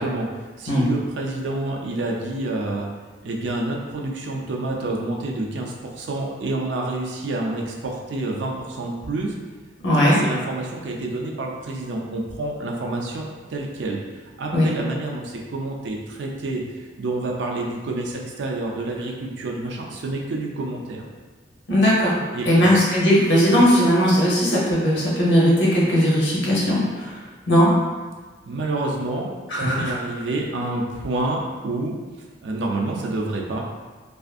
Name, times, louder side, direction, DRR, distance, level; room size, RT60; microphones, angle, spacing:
voice 1, 0.0-2.9 3.2-9.3 10.0-14.0 14.4-21.0 22.3-22.7 28.5-29.3 29.6-31.9 32.4-33.6, right 2 dB, 65° right, -1 dB, 0.4 m, -28 dB
voice 2, 9.8-10.2 14.5-14.7 21.7-27.2 27.5-27.7 29.5-29.9, equal, 70° left, -6 dB, 0.8 m, -18 dB
2.5 x 2.4 x 2.4 m, 1.3 s
head